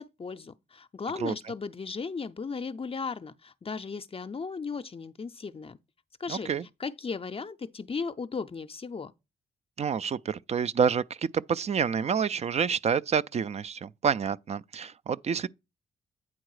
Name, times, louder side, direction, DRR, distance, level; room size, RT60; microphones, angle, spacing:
voice 1, 0.0-5.8 6.2-6.5 6.8-9.1, left 5 dB, 35° left, 0.5 m, -36 dB
voice 2, 6.3-6.6 9.8-11.0 11.3-15.5, right 6 dB, 40° right, 0.4 m, -28 dB
8.8 x 3.8 x 4.8 m
supercardioid pair, 55°, 18 cm